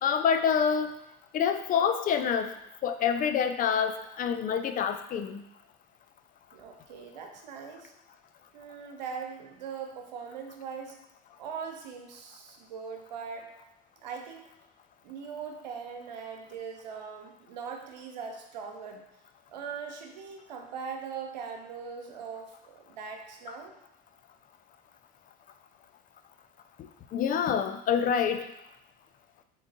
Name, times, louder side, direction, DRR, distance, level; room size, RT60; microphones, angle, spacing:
voice 1, 0.0-0.9 1.3-2.5 2.8-5.4 27.1-28.4, left 7 dB, 40° left, 9 dB, 0.5 m, -26 dB
voice 2, 6.5-7.9 8.5-11.0 11.4-13.5 14.0-14.5 15.0-19.0 19.5-23.8, right 6 dB, 90° right, 3 dB, 0.7 m, -40 dB
3.8 x 3.6 x 3.9 m, 0.84 s
hypercardioid pair, 80°, 21 cm